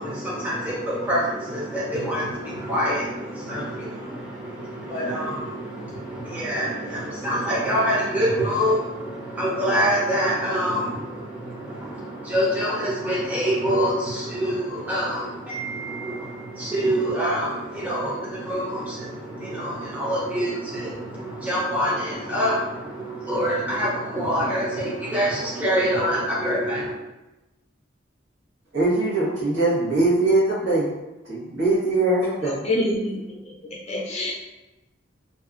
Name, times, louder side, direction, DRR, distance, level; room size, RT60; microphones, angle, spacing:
voice 1, 0.0-27.0, equal, 10° right, -7 dB, 0.7 m, -26 dB
voice 2, 28.7-30.9 31.3-32.6, right 2 dB, 80° right, -8 dB, 1.1 m, -21 dB
voice 3, 32.6-33.5 33.9-34.3, left 1 dB, 35° left, -4 dB, 0.5 m, -26 dB
2.6 x 2.3 x 2.4 m, 1.0 s
head